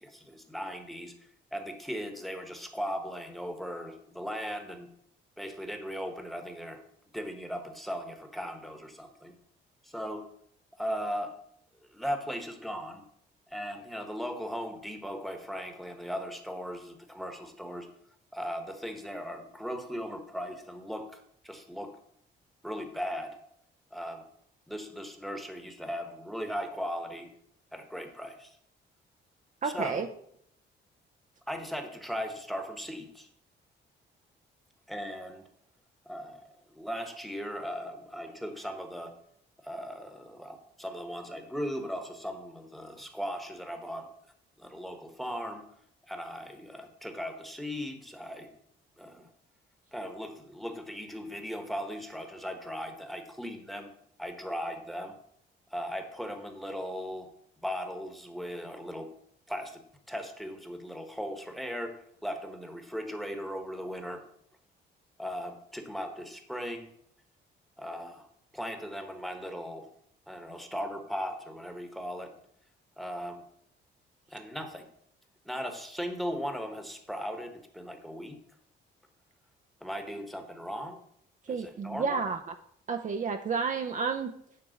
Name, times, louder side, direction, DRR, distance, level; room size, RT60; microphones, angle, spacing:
voice 1, 0.0-1.1 1.5-4.9 5.4-6.8 7.1-9.4 9.8-10.3 10.8-11.3 11.9-13.0 13.5-17.9 18.3-21.9 22.6-23.4 23.9-24.2 24.7-27.3 27.7-28.5 29.6-30.0 31.5-33.3 34.9-35.5 36.1-39.1 39.6-44.1 44.6-45.6 46.1-48.5 49.0-49.3 49.9-53.9 54.2-55.2 55.7-57.3 57.6-59.1 59.5-59.8 60.1-64.2 65.2-66.9 67.8-68.3 68.5-69.9 70.3-72.3 73.0-73.4 74.3-74.9 75.4-78.4 79.8-81.0 81.5-82.2, equal, ahead, 6 dB, 1.2 m, -38 dB
voice 2, 29.6-30.1 81.5-82.4 82.9-84.3, right 5 dB, 40° right, 4 dB, 0.6 m, -30 dB
9.3 x 3.4 x 6.4 m, 0.69 s
cardioid pair, 90°, 20 cm